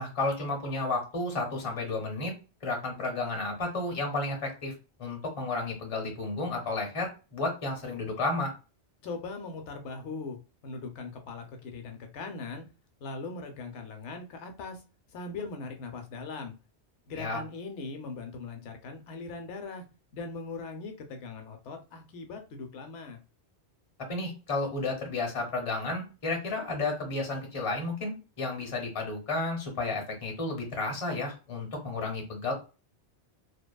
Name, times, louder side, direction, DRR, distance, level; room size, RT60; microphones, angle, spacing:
voice 1, 0.0-2.3 2.6-4.7 5.0-8.5 17.2-17.4 24.1-32.5, left 2 dB, 35° left, 1 dB, 0.8 m, -32 dB
voice 2, 9.0-10.4 10.6-12.6 13.0-14.8 15.1-16.6 17.1-19.8 20.1-23.2, left 3 dB, 85° left, 5 dB, 0.9 m, -40 dB
2.8 x 2.1 x 2.2 m, 0.32 s
omnidirectional pair, 1.1 m